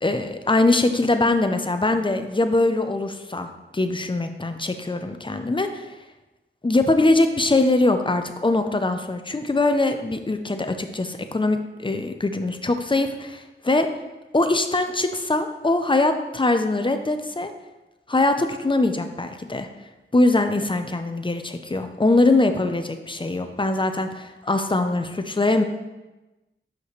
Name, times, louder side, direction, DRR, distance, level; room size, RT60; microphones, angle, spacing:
voice 1, 0.0-5.9 6.6-13.9 14.3-17.5 18.1-19.7 20.1-25.6, left 2 dB, 25° left, 7 dB, 0.6 m, -22 dB
6.6 x 5.5 x 3.2 m, 1.1 s
wide cardioid pair, 50°, 21 cm